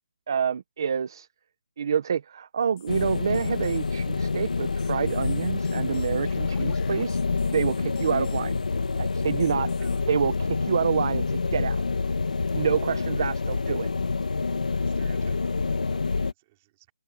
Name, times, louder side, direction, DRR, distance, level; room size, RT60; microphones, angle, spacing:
voice 1, 0.3-1.3 1.8-7.2 7.5-8.6 9.0-9.7 10.1-11.8 12.5-13.9, right 7 dB, 35° right, 0.8 m, -27 dB
sound 1, 2.8-10.0, left 18 dB, 10° left, 2.8 m, -54 dB
sound 2, 2.9-16.3, left 4 dB, 85° left, 1.4 m, -27 dB
voice 2, 9.5-10.1 11.3-11.4 12.9-13.1 14.6-16.9, right 18 dB, 15° right, 3.9 m, -54 dB
open air
hypercardioid pair, 180°, 4 cm